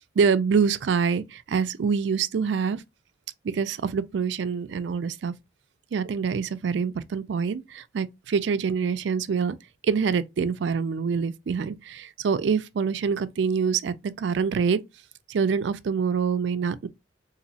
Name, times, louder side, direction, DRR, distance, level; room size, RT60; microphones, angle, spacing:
voice 1, 0.2-2.8 3.4-5.3 5.9-9.6 9.8-14.8 15.3-16.9, right 6 dB, 70° right, 0.4 m, -25 dB
4.0 x 2.6 x 2.7 m
head